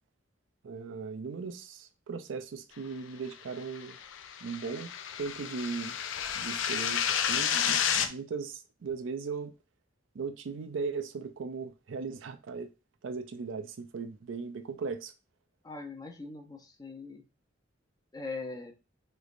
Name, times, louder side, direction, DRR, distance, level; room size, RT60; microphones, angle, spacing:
voice 1, 0.6-4.0 4.4-4.9 5.2-6.0 6.3-9.5 10.1-12.7 13.0-15.1, right 5 dB, 85° right, 0.4 m, -38 dB
sound 1, 3.6-8.1, left 8 dB, 85° left, 0.4 m, -31 dB
voice 2, 15.6-17.2 18.1-18.7, left 3 dB, 20° left, 0.5 m, -41 dB
3.2 x 3.1 x 2.4 m
head